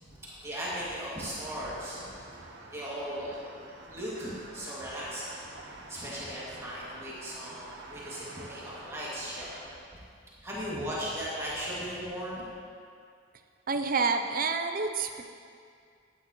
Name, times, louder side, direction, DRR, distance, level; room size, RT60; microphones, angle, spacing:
voice 1, 0.1-2.4 2.7-5.4 5.7-9.5 10.4-12.5, equal, 15° right, -9 dB, 2.4 m, -37 dB
sound 1, 1.2-9.8, right 2 dB, 65° right, 1.2 m, -48 dB
voice 2, 13.7-15.2, right 4 dB, 45° right, 6 dB, 0.6 m, -28 dB
14.5 x 9.9 x 3.1 m, 2.3 s
head